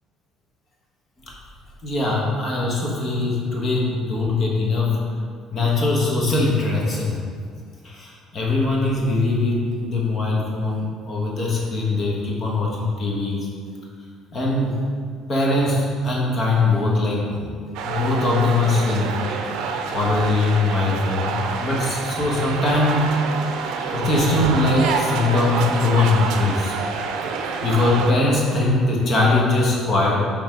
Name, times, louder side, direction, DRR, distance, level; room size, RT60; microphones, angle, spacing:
voice 1, 1.8-5.0 5.5-7.2 7.8-13.4 14.3-14.8 15.3-17.5 17.8-19.1 19.9-23.1 23.9-26.7 27.6-30.2, left 2 dB, 30° left, -3 dB, 1.2 m, -21 dB
sound 1, 17.7-28.1, right 5 dB, 80° right, 0.5 m, -27 dB
5.5 x 3.5 x 5.1 m, 2.2 s
cardioid pair, 160°, 0 cm